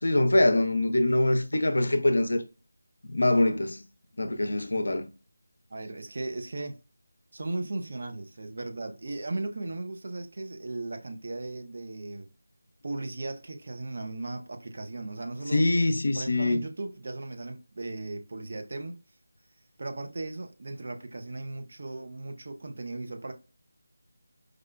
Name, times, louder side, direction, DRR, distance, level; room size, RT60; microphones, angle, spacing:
voice 1, 0.0-2.4 3.0-3.8 4.2-5.1 15.5-16.6, left 1 dB, 70° left, 0.5 m, -24 dB
voice 2, 5.7-6.7 7.3-12.3 12.8-15.6 16.2-19.0 19.8-23.3, right 2 dB, 50° right, 0.6 m, -37 dB
4.8 x 2.2 x 2.3 m
figure-of-eight pair, 160°, 0 cm